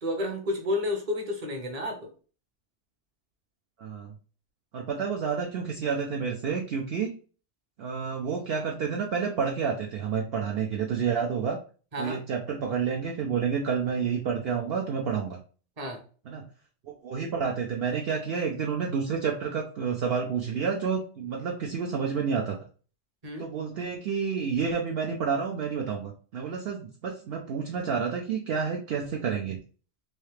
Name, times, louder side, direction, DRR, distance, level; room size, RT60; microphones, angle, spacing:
voice 1, 0.0-2.1 11.9-12.2 15.8-16.0 23.2-23.5, left 1 dB, 35° right, 2 dB, 0.9 m, -31 dB
voice 2, 3.8-4.1 4.7-7.1 7.8-11.6 12.0-15.4 16.3-16.5 16.9-22.6 23.4-29.6, right 6 dB, 65° right, 1 dB, 0.7 m, -29 dB
3.1 x 2.8 x 3.2 m, 0.38 s
omnidirectional pair, 1.2 m